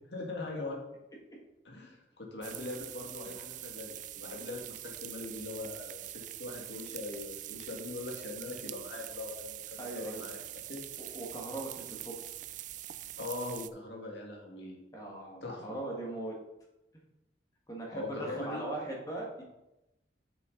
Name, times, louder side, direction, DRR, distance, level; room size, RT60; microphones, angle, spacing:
voice 1, 0.1-0.8 1.6-6.0 6.4-10.4 10.7-10.8 13.2-14.8 15.4-15.8 17.9-18.6, left 2 dB, 70° left, 0 dB, 1.9 m, -41 dB
sound 1, 2.4-13.7, right 14 dB, 45° right, 0.3 m, -44 dB
voice 2, 9.8-10.2 11.0-12.1 14.9-16.3 17.7-19.4, right 2 dB, 20° left, -1 dB, 1.6 m, -39 dB
7.5 x 6.4 x 3.9 m, 0.92 s
head